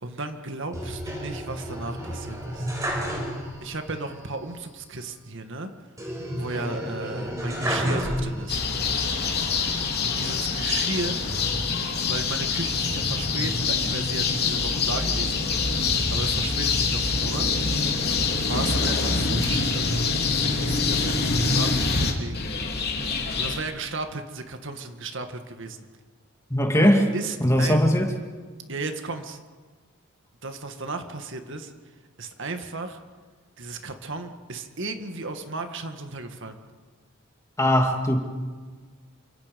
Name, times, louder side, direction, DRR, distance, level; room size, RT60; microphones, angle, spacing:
voice 1, 0.0-2.7 3.6-5.7 6.3-8.6 10.0-11.2 12.1-17.5 18.1-22.5 23.4-25.9 26.8-27.8 28.7-29.4 30.4-31.7 32.2-33.0 33.6-36.6, right 3 dB, 55° right, 6 dB, 1.9 m, -34 dB
sound 1, 0.7-3.8 4.1-4.2 6.0-8.7 9.2-10.1, equal, 15° right, 5.3 m, -31 dB
sound 2, 8.5-23.6, left 4 dB, 45° left, 3.2 m, -25 dB
voice 2, 26.5-27.1 27.4-28.1 37.6-38.2, equal, 15° left, 3 dB, 2.5 m, -19 dB
28.5 x 26.5 x 5.3 m, 1.4 s
head